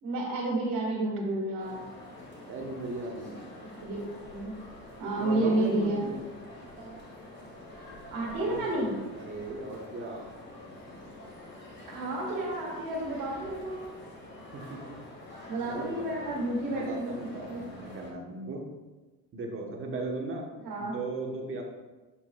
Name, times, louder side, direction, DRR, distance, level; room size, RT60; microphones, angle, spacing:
voice 1, 0.0-1.8 3.8-4.6 5.0-6.1 6.8-7.0 8.1-8.9 11.9-13.8 15.5-17.6 20.6-21.0, right 1 dB, 70° right, -5 dB, 2.2 m, -31 dB
sound 1, 1.6-18.1, left 1 dB, 30° left, 2.2 m, -47 dB
voice 2, 2.5-3.4 5.2-6.2 8.4-8.8 9.1-10.2 14.5-15.0 15.7-16.3 16.6-18.7 19.3-20.5 20.8-21.6, right 2 dB, 35° right, 1 dB, 1.2 m, -37 dB
7.2 x 7.0 x 2.4 m, 1.2 s
cardioid pair, 135°, 36 cm